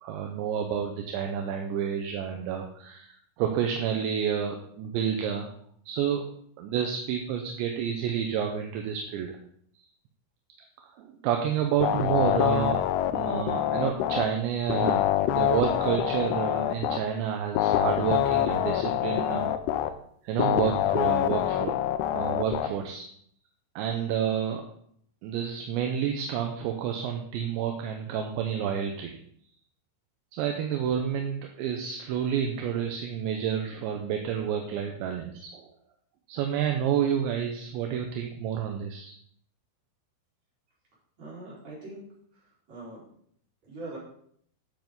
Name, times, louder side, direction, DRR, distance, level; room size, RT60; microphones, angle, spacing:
voice 1, 0.0-5.5 5.9-6.2 6.6-9.4 10.8-12.9 13.1-19.6 20.2-21.8 22.1-23.1 23.8-24.6 25.2-29.2 30.3-35.7 36.3-39.1, right 8 dB, 75° right, 3 dB, 2.8 m, -29 dB
sound 1, 11.8-14.2 14.7-17.0 17.6-19.9 20.4-22.7, left 12 dB, 80° left, 2.7 m, -25 dB
voice 2, 41.2-42.0 42.3-43.0 43.7-44.0, right 2 dB, 35° right, -7 dB, 5.3 m, -42 dB
12.0 x 7.5 x 3.9 m, 0.65 s
omnidirectional pair, 5.8 m